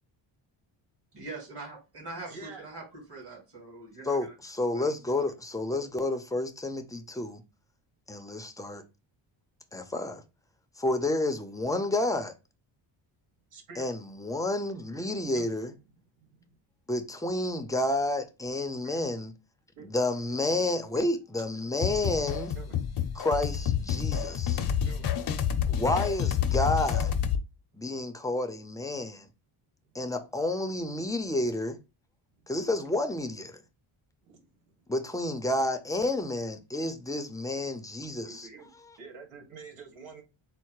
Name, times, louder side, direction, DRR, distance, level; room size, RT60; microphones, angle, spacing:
voice 1, 1.1-4.3 4.7-5.0 25.9-26.0, right 3 dB, 50° right, 2.6 m, -43 dB
voice 2, 2.3-2.6 13.5-13.9 15.3-15.5 16.2-16.6 18.8-19.1 19.8-19.9 20.9-21.1 22.6-22.7 24.8-25.4 34.2-34.5 38.3-38.7 39.0-40.2, right 4 dB, 80° right, 1.8 m, -47 dB
voice 3, 4.1-7.4 8.1-8.8 9.7-10.2 10.8-12.3 13.8-15.7 16.9-19.3 19.8-22.5 23.1-24.6 25.7-27.1 27.7-29.3 29.9-31.8 32.5-33.6 34.9-38.5, left 2 dB, 5° left, 0.6 m, -30 dB
sound 1, 21.8-27.4, left 8 dB, 50° left, 0.7 m, -28 dB
4.4 x 2.1 x 4.6 m
cardioid pair, 105°, 49 cm